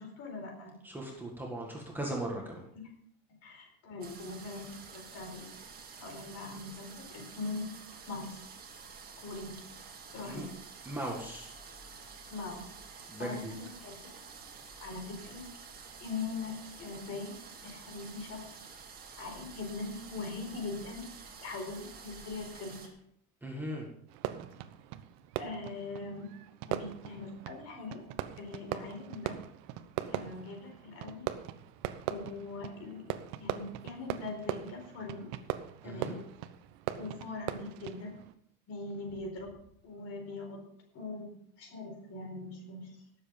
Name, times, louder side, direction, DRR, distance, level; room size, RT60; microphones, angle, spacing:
voice 1, 0.0-0.8 2.7-2.9 3.4-5.5 6.0-7.7 8.1-8.4 9.2-9.5 10.1-10.5 12.3-12.7 13.2-13.9 14.8-15.4 16.0-16.5 16.8-17.3 17.6-18.5 19.2-21.0 21.4-22.9 25.4-26.3 26.7-28.0 28.4-29.4 30.1-31.3 32.1-35.3 35.8-36.2 36.9-38.1 38.7-39.5 39.8-40.6 40.9-41.3 41.6-43.0, left 3 dB, 45° left, 3 dB, 4.5 m, -41 dB
voice 2, 0.8-2.7 10.3-10.4 10.8-11.5 13.1-13.5 23.4-23.9 35.8-36.1, right 1 dB, 5° right, -1 dB, 1.7 m, -38 dB
sound 1, 4.0-22.9, right 5 dB, 30° right, 2.2 m, -50 dB
Fireworks, 24.1-38.3, right 12 dB, 90° right, 1.0 m, -40 dB
18.5 x 7.7 x 5.2 m, 0.69 s
cardioid pair, 170°, 33 cm